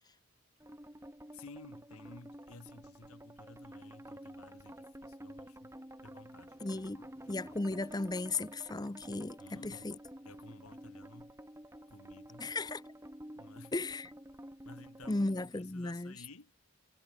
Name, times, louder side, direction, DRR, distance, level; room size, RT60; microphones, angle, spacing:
sound 1, 0.6-15.5, equal, 10° right, 4.7 m, -50 dB
voice 1, 1.3-5.7 6.0-7.1 9.4-10.0 10.2-11.4 11.9-12.6 13.4-13.7 14.6-16.5, left 2 dB, 80° left, 2.3 m, -55 dB
voice 2, 6.6-9.9 12.4-12.8 13.7-14.1 15.1-16.1, left 2 dB, 15° left, 0.6 m, -36 dB
head